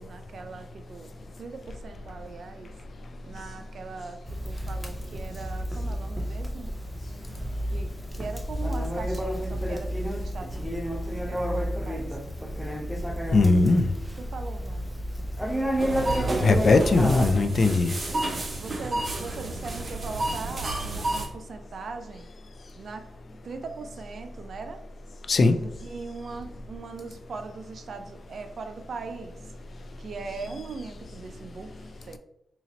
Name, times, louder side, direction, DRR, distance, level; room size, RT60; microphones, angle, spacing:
voice 1, 0.0-2.7 3.2-6.7 7.7-10.8 11.3-12.2 14.2-15.0 18.6-22.3 22.8-23.1 23.4-24.8 25.5-29.4 30.0-31.7 32.1-32.2, right 4 dB, 65° right, 7 dB, 0.4 m, -40 dB
Conversation, 4.3-17.4, equal, ahead, 0.5 m, -31 dB
voice 2, 13.3-13.8 16.4-17.9 25.3-25.6, left 3 dB, 55° left, 8 dB, 0.3 m, -19 dB
sound 1, 15.8-21.3, right 2 dB, 45° right, 0.8 m, -31 dB
2.9 x 2.8 x 4.0 m, 0.77 s
cardioid pair, 90°, 0 cm